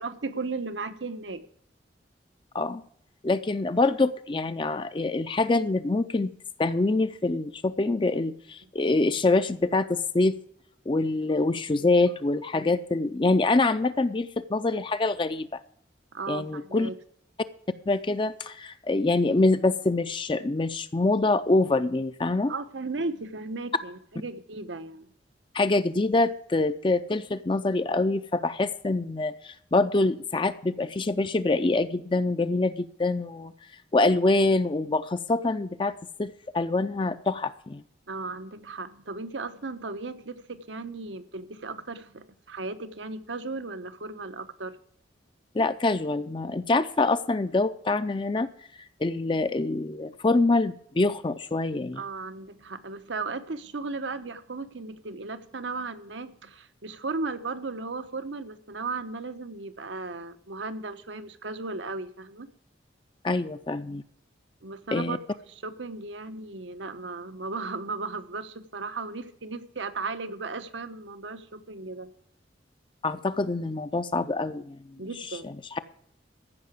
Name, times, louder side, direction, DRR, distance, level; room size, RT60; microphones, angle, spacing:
voice 1, 0.0-1.5 8.6-8.7 11.8-11.9 16.1-16.9 22.5-25.1 38.1-44.8 51.9-62.5 64.6-72.1 75.0-75.5, right 3 dB, 85° right, 10 dB, 1.0 m, -36 dB
voice 2, 3.2-6.3 6.6-10.4 10.9-15.6 16.3-16.9 17.9-22.5 25.5-33.5 33.9-35.9 36.2-37.8 45.5-48.5 49.0-52.0 63.2-64.0 64.9-65.2 73.0-74.8, left 2 dB, 25° left, 11 dB, 0.5 m, -25 dB
15.0 x 5.8 x 8.3 m, 0.65 s
head